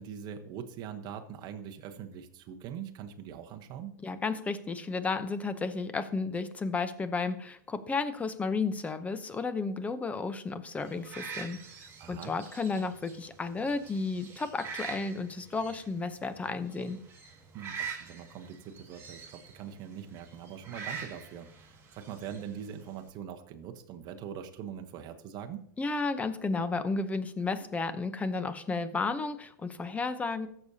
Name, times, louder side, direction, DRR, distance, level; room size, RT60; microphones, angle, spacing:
voice 1, 0.0-4.0 12.0-12.3 17.5-25.7, right 8 dB, 40° right, 6 dB, 1.0 m, -42 dB
voice 2, 4.0-11.6 12.1-17.0 25.8-30.5, left 4 dB, 15° left, 11 dB, 0.7 m, -33 dB
sound 1, 10.8-23.1, right 6 dB, 20° right, 3.4 m, -45 dB
15.0 x 6.8 x 2.8 m, 0.69 s
hypercardioid pair, 125°, 11 cm